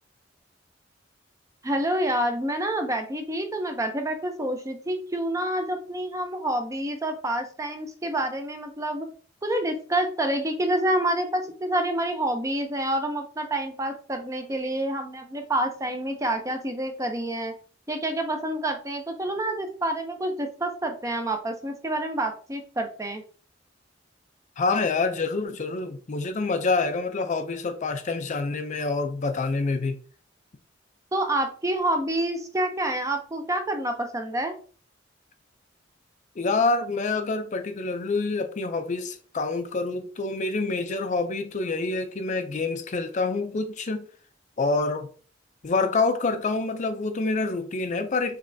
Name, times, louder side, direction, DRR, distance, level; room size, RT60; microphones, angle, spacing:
voice 1, 1.6-9.1 9.4-17.5 17.9-23.2 31.1-34.5, right 1 dB, 15° right, 0.6 m, -28 dB
voice 2, 24.6-30.0 36.4-44.0 44.6-45.1 45.6-48.4, left 3 dB, 40° left, 0.5 m, -27 dB
5.1 x 3.2 x 2.7 m
head